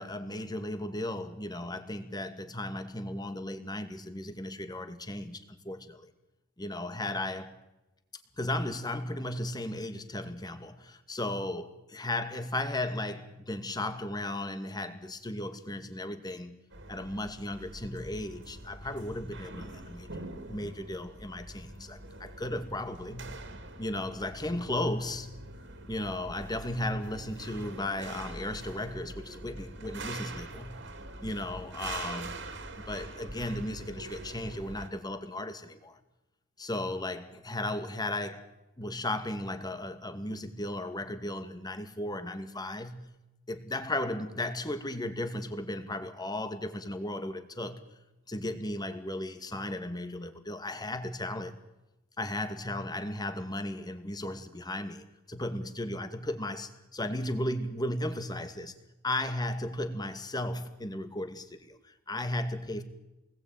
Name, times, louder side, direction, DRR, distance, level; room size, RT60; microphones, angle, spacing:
voice 1, 0.0-6.1 6.6-7.5 8.4-16.6 16.9-23.4 23.8-25.4 25.9-30.9 31.2-32.4 32.9-36.0 36.6-43.1 43.5-47.8 48.3-51.6 52.2-58.8 59.0-62.8, left 1 dB, 20° left, 2.3 m, -35 dB
sound 1, 16.7-34.9, right 2 dB, 65° right, 3.3 m, -44 dB
28.0 x 20.5 x 9.3 m
head